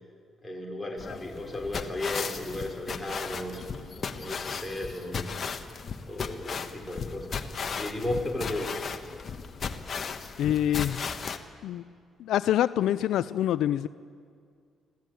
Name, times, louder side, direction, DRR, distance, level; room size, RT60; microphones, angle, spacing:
voice 1, 0.4-5.4 6.1-7.4 7.8-8.8, left 1 dB, 10° left, -1 dB, 5.3 m, -35 dB
sound 1, 1.0-11.4, left 5 dB, 45° left, 1.5 m, -36 dB
voice 2, 10.4-11.0 11.6-11.8 12.2-13.9, left 11 dB, 80° left, 15 dB, 0.5 m, -26 dB
26.0 x 16.0 x 9.2 m, 2.2 s
cardioid pair, 90°, 0 cm